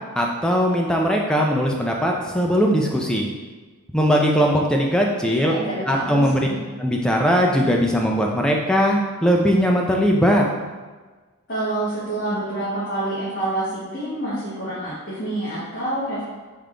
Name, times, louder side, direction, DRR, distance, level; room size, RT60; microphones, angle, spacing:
voice 1, 0.2-3.3 3.9-5.6 5.9-6.5 6.8-10.4, equal, 5° left, -1 dB, 0.3 m, -19 dB
voice 2, 5.4-6.6 11.5-16.3, right 1 dB, 50° left, -11 dB, 1.2 m, -27 dB
3.6 x 3.3 x 3.7 m, 1.3 s
head